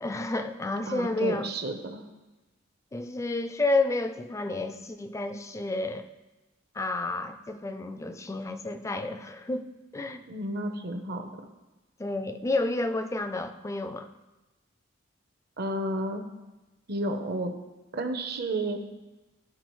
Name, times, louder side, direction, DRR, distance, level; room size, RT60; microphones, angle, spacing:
voice 1, 0.0-1.5 2.9-6.1 6.7-9.6 9.9-10.2 12.0-14.1, left 2 dB, 15° left, 8 dB, 0.3 m, -30 dB
voice 2, 0.9-2.0 10.3-11.3 15.6-16.2 16.9-17.5 17.9-18.8, right 1 dB, 50° right, 5 dB, 0.8 m, -31 dB
12.5 x 4.7 x 3.1 m, 1.1 s
head